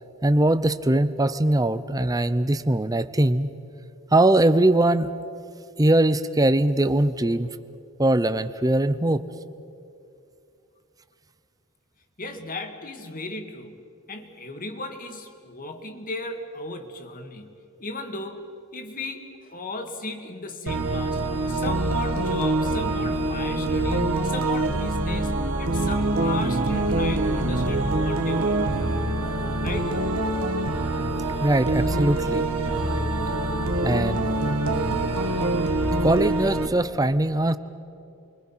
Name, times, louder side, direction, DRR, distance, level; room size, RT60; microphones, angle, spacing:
voice 1, 0.2-3.5 4.1-5.1 5.8-7.5 8.0-9.2 31.4-32.4 33.8-34.5 36.0-37.6, right 1 dB, 15° right, 12 dB, 0.7 m, -21 dB
voice 2, 12.2-13.8 14.1-17.5 17.8-18.4 18.7-28.6 29.6-30.0, left 2 dB, 40° left, 5 dB, 2.0 m, -35 dB
sound 1, 20.7-36.7, right 2 dB, 70° right, 1.7 m, -25 dB
29.5 x 23.5 x 5.7 m, 2.5 s
head